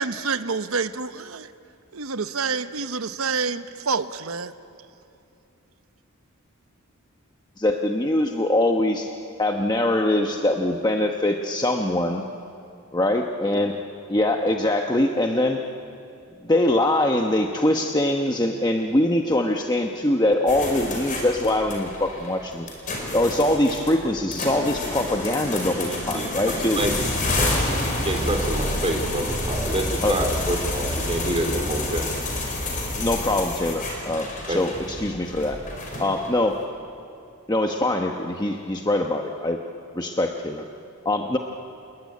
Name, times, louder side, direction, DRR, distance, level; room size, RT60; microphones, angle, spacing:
voice 1, 0.0-1.4 1.9-4.5, right 4 dB, 75° right, 11 dB, 0.9 m, -27 dB
voice 2, 7.6-9.1 9.4-12.2 12.9-13.8 14.1-15.6 16.4-22.7 23.1-26.8 30.0-30.2 33.0-35.6 36.0-36.6 37.5-39.6 39.9-40.7 41.0-41.4, left 1 dB, 20° left, 3 dB, 1.0 m, -23 dB
sound 1, 20.5-36.4, left 2 dB, 40° left, 5.0 m, -29 dB
voice 3, 25.9-26.9 27.3-32.0 34.5-34.6, right 1 dB, 25° right, 3 dB, 3.2 m, -28 dB
27.5 x 21.0 x 9.5 m, 2.6 s
head